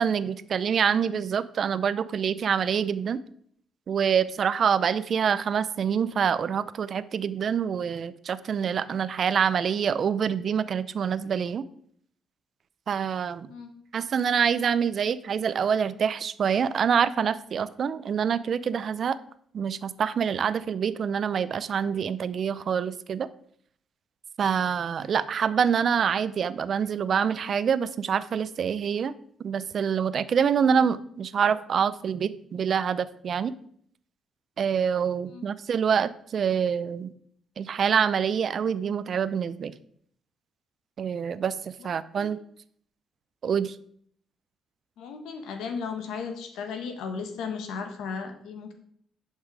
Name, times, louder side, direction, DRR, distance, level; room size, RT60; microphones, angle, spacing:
voice 1, 0.0-3.2 3.9-11.6 12.9-13.5 13.9-19.2 19.5-23.3 24.4-29.1 29.4-33.5 34.6-37.1 37.6-39.7 41.0-42.4 43.4-43.7, right 7 dB, 55° right, 15 dB, 0.6 m, -26 dB
voice 2, 45.0-48.7, left 5 dB, 85° left, 6 dB, 1.4 m, -35 dB
11.0 x 5.6 x 4.7 m, 0.64 s
cardioid pair, 90°, 0 cm